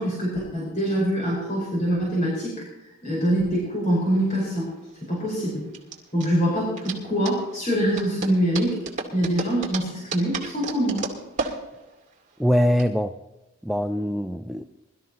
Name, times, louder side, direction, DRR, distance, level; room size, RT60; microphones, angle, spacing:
voice 1, 0.0-2.5 3.0-4.7 5.1-5.6 6.1-8.8 9.1-11.0, equal, 35° left, -6 dB, 5.0 m, -24 dB
sound 1, 3.9-12.8, right 4 dB, 35° right, 2.1 m, -35 dB
voice 2, 12.4-13.2 13.6-14.6, equal, ahead, 6 dB, 0.4 m, -23 dB
22.0 x 13.0 x 3.0 m, 1.0 s
head